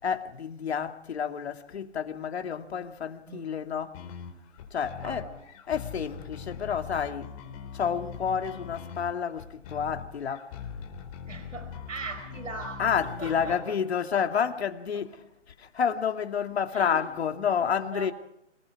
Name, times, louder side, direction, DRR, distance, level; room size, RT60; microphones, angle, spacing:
voice 1, 0.0-4.0 4.7-5.3 5.7-7.3 7.7-10.5 12.8-15.2 15.6-18.1, left 7 dB, 55° left, 2.5 m, -29 dB
sound 1, 3.9-13.6, left 7 dB, 30° left, 4.1 m, -42 dB
voice 2, 5.0-5.4 11.3-12.9 13.2-13.7 16.7-17.0 17.6-18.1, right 3 dB, 85° right, 4.9 m, -40 dB
27.5 x 21.0 x 4.8 m
hypercardioid pair, 155°, 37 cm